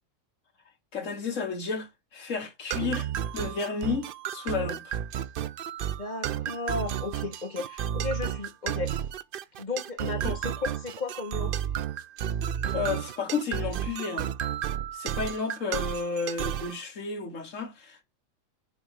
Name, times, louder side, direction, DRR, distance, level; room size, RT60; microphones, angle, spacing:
voice 1, 0.9-3.1 3.3-5.0 10.2-10.4 12.7-14.3 14.9-18.0, left 5 dB, 65° left, 1.7 m, -32 dB
sound 1, 2.7-16.8, right 10 dB, 70° right, 0.5 m, -32 dB
voice 2, 6.0-9.0 9.6-11.5, left 3 dB, 35° left, 1.6 m, -34 dB
7.0 x 3.0 x 5.1 m
omnidirectional pair, 1.4 m